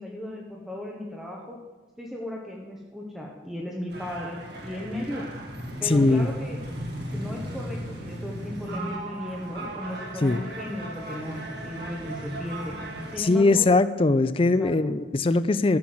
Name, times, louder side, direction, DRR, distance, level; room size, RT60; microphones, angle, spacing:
voice 1, 0.0-1.6 2.0-4.4 4.6-5.3 5.8-6.6 7.1-12.7 13.1-13.7 14.6-14.9, left 1 dB, ahead, -2 dB, 1.4 m, -36 dB
sound 1, 3.9-13.2, right 1 dB, 60° right, 2.7 m, -36 dB
voice 2, 5.8-6.3 10.2-10.4 13.2-15.8, left 3 dB, 30° left, 13 dB, 0.4 m, -21 dB
12.5 x 7.2 x 7.8 m, 1.3 s
head